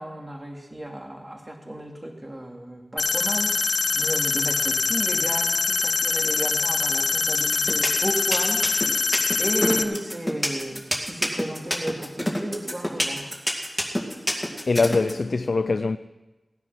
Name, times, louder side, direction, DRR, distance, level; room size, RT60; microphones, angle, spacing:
voice 1, 0.0-8.7 9.4-13.3, right 1 dB, 25° right, 2.6 m, -33 dB
sound 1, 3.0-9.8, left 4 dB, 80° left, 0.8 m, -24 dB
sound 2, 7.4-15.1, left 1 dB, 5° left, 2.4 m, -26 dB
voice 2, 14.7-16.0, left 3 dB, 60° left, 0.4 m, -22 dB
17.5 x 9.7 x 5.8 m
wide cardioid pair, 80°, 0 cm